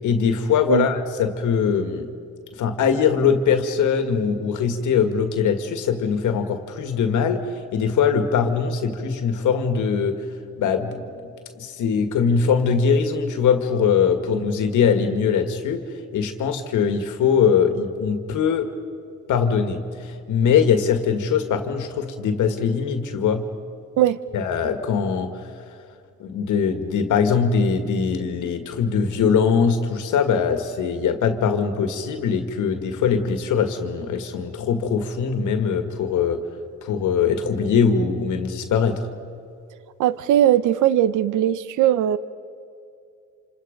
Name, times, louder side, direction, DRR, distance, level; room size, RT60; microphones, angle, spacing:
voice 1, 0.0-2.1 2.6-7.4 7.7-10.2 10.6-11.1 11.6-15.8 16.1-18.7 19.3-23.5 24.3-25.4 26.2-36.4 36.8-39.1, left 6 dB, 80° left, 7 dB, 1.9 m, -21 dB
voice 2, 40.0-42.2, right 12 dB, 85° right, 16 dB, 0.8 m, -19 dB
27.5 x 27.0 x 5.3 m, 2.4 s
cardioid pair, 90°, 30 cm